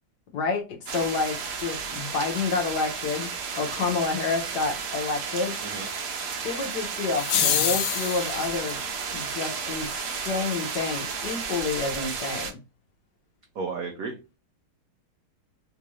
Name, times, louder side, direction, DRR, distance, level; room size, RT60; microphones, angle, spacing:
voice 1, 0.3-5.6 6.4-8.8 9.1-12.6, left 4 dB, 65° left, 1.2 m, -29 dB
sound 1, 0.9-12.5, right 5 dB, 60° right, 1.3 m, -33 dB
sound 2, 7.2-8.5, left 9 dB, 80° left, 1.5 m, -25 dB
voice 2, 13.5-14.4, right 4 dB, 80° right, 0.8 m, -34 dB
3.6 x 2.5 x 3.0 m
omnidirectional pair, 2.2 m